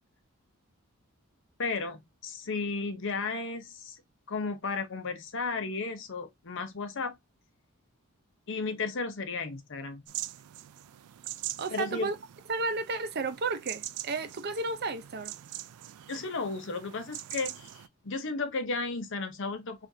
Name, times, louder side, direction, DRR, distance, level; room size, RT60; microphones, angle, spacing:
voice 1, 1.6-4.0 4.3-7.2 8.5-10.0 11.7-12.1 16.1-19.9, left 4 dB, 55° left, 0.7 m, -34 dB
sound 1, 10.1-17.9, right 14 dB, 90° right, 0.4 m, -43 dB
voice 2, 11.6-12.2 12.5-15.3, right 3 dB, 45° right, 0.6 m, -32 dB
5.0 x 2.6 x 2.7 m
head